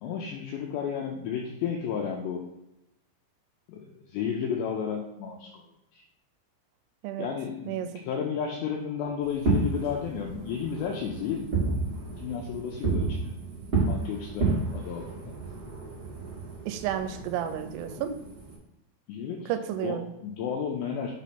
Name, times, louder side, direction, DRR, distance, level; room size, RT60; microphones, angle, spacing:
voice 1, 0.0-2.4 3.7-5.6 5.9-6.0 7.2-11.5 12.2-13.3 13.9-15.4 18.0-18.1 19.1-19.5 19.8-21.1, left 7 dB, 85° left, 0 dB, 2.5 m, -32 dB
Fireworks, 9.3-18.6, right 4 dB, 50° right, 1.7 m, -31 dB
voice 2, 16.7-18.1 19.5-20.1, right 10 dB, 85° right, 9 dB, 3.2 m, -31 dB
7.2 x 3.1 x 5.9 m, 0.89 s
omnidirectional pair, 5.8 m